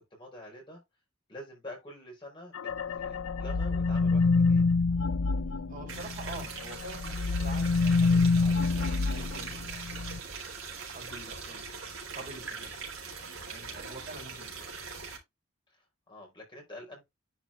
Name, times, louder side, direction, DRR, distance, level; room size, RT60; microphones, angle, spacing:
voice 1, 0.1-0.8 1.3-2.7 2.9-4.6 11.7-11.8 15.7-17.0, left 1 dB, 20° left, 4.4 m, -46 dB
sound 1, 2.5-6.5 6.8-10.2, left 4 dB, 65° left, 0.5 m, -27 dB
voice 2, 5.7-10.4 10.9-12.9 13.5-14.9, right 2 dB, 40° right, 3.7 m, -47 dB
sound 2, 5.9-15.2, right 5 dB, 65° right, 4.0 m, -41 dB
10.5 x 5.1 x 2.5 m
head